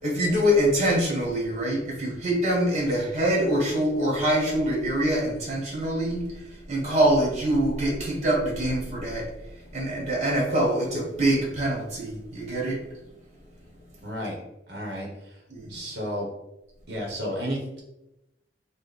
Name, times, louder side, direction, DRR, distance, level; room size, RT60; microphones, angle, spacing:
voice 1, 0.0-9.3 9.5-12.8 15.5-15.7, right 1 dB, 40° right, -2 dB, 1.4 m, -24 dB
voice 2, 14.0-14.4 14.7-15.4 15.7-16.3 16.9-17.8, equal, 65° right, -1 dB, 1.1 m, -32 dB
5.0 x 2.4 x 4.2 m, 0.91 s
head